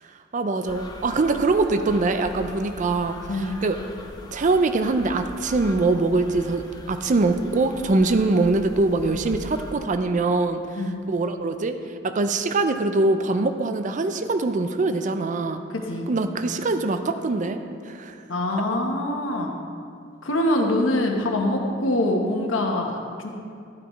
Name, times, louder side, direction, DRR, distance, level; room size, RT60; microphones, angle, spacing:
voice 1, 0.3-3.8 4.3-10.6 11.1-11.8 12.0-15.6 16.1-18.2, right 3 dB, 40° right, 8 dB, 0.4 m, -23 dB
sound 1, 0.6-9.7, left 1 dB, 20° left, 0.8 m, -41 dB
voice 2, 15.7-16.1 18.3-19.5 20.2-23.3, left 1 dB, 85° left, 2 dB, 1.1 m, -24 dB
12.5 x 9.1 x 3.1 m, 2.4 s
head